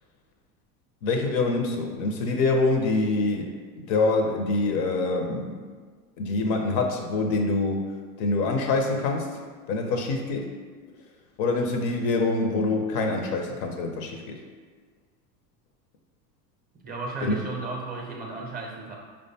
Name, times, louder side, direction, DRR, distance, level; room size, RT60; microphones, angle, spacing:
voice 1, 1.0-5.6 6.2-7.9 8.2-9.3 9.7-10.5 11.4-14.4 17.2-17.4, left 3 dB, 50° left, 4 dB, 0.5 m, -25 dB
voice 2, 16.8-19.0, right 3 dB, 20° right, -2 dB, 0.5 m, -34 dB
4.7 x 2.2 x 2.7 m, 1.5 s
hypercardioid pair, 90°, 49 cm